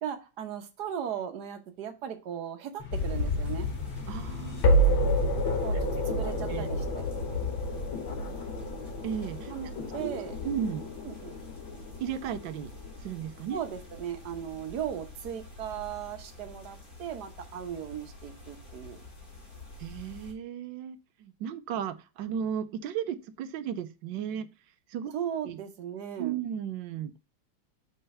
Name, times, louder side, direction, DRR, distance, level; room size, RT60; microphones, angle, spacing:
voice 1, 0.0-3.7 5.6-5.7 6.0-6.8 9.5-10.3 11.0-11.3 13.5-19.0 25.1-26.4, right 9 dB, 60° right, 1.5 m, -37 dB
sound 1, 2.8-13.8, equal, 85° left, 2.2 m, -30 dB
sound 2, 2.9-20.3, left 4 dB, 45° left, 3.1 m, -40 dB
voice 2, 4.1-4.8 6.5-6.7 9.0-9.5 10.0-10.9 12.0-12.7 13.0-13.6 19.8-24.5 24.9-25.1 25.4-25.6 26.2-27.1, right 8 dB, 75° right, 1.3 m, -35 dB
5.5 x 4.6 x 5.4 m
omnidirectional pair, 2.1 m